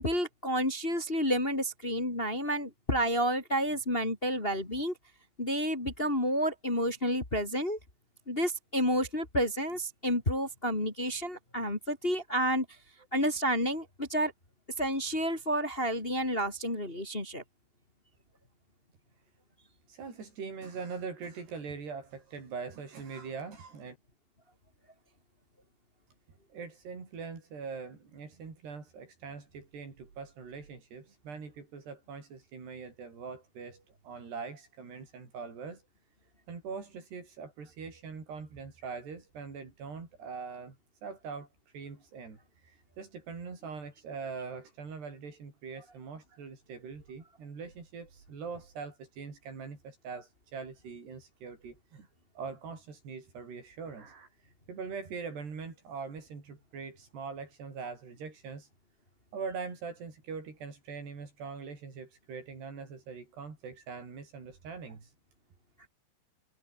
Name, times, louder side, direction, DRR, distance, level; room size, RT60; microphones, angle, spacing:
voice 1, 0.0-4.9 5.4-7.8 8.3-12.6 13.1-14.3 14.8-17.4, equal, 15° left, 3.2 m, -30 dB
voice 2, 19.9-24.0 26.5-35.8 36.5-40.8 41.0-52.1 52.4-58.7 59.3-65.1, right 5 dB, 80° right, 8.3 m, -42 dB
omnidirectional pair, 4.7 m